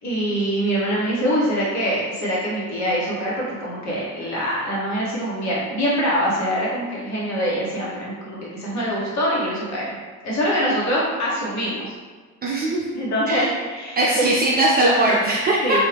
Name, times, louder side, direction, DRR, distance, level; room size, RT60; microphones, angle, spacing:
voice 1, 0.0-9.9 10.2-11.9 12.9-14.3 15.6-15.8, equal, 40° left, -6 dB, 1.4 m, -24 dB
voice 2, 12.4-12.9 13.3-13.5 14.0-15.8, right 2 dB, 25° right, -4 dB, 0.4 m, -20 dB
2.8 x 2.6 x 3.3 m, 1.4 s
figure-of-eight pair, 60°, 43 cm